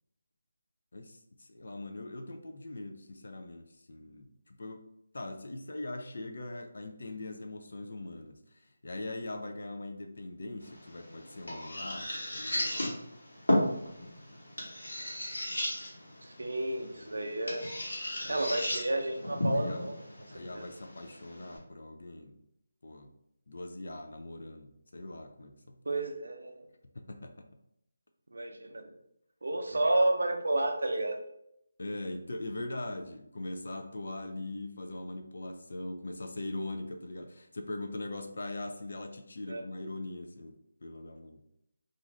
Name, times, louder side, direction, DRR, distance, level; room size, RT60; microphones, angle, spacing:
voice 1, 0.9-4.8 5.1-12.8 16.4-16.5 16.9-17.2 18.2-18.6 19.5-19.9 20.3-22.4 22.8-23.1 23.5-26.0 26.9-27.5 29.7-29.8 31.8-41.4, left 2 dB, 65° left, 5 dB, 0.4 m, -41 dB
sound 1, 10.6-21.6, left 1 dB, 90° left, 1.2 m, -35 dB
voice 2, 16.2-17.6 18.2-20.0 20.5-20.6 25.9-26.6 28.3-28.9 29.4-31.2 39.5-39.6, right 1 dB, 80° right, 4 dB, 0.5 m, -31 dB
2.5 x 2.4 x 3.1 m, 0.78 s
figure-of-eight pair, 160°, 0 cm